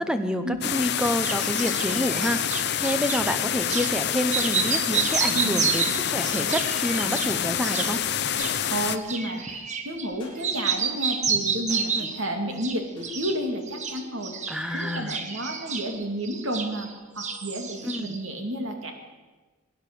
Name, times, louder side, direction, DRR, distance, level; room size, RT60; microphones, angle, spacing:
voice 1, 0.0-8.0 11.9-12.1 14.5-15.2 17.8-18.1, equal, 5° right, 9 dB, 0.9 m, -28 dB
sound 1, 0.6-9.0, left 9 dB, 55° left, 0.7 m, -27 dB
sound 2, 0.9-3.2 3.7-3.9 4.2-10.1 10.4-12.2 12.6-13.4 13.7-16.9 17.2-18.2, right 6 dB, 35° right, 1.2 m, -30 dB
voice 2, 8.7-14.3 14.7-16.9 17.1-18.9, right 1 dB, 70° right, 4 dB, 2.4 m, -31 dB
sound 3, 10.2-10.9 11.7-12.2 13.0-13.8, left 2 dB, 25° left, 4.0 m, -52 dB
21.5 x 9.8 x 6.7 m, 1.3 s
head